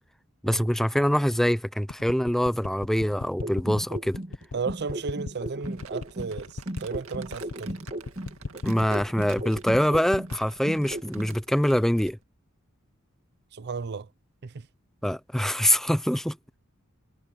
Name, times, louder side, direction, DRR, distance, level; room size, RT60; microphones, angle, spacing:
voice 1, 0.4-4.2 8.6-12.2 15.0-16.4, equal, ahead, 0.5 m, -24 dB
sound 1, 1.9-10.4, left 3 dB, 85° left, 0.8 m, -37 dB
sound 2, 3.4-6.3 6.7-10.3 10.7-11.3, right 1 dB, 35° right, 1.7 m, -36 dB
voice 2, 4.5-7.8 13.5-14.1 14.4-14.7, right 5 dB, 55° right, 0.6 m, -34 dB
Crumpling crinkling, 5.6-12.2, right 5 dB, 80° right, 2.1 m, -49 dB
head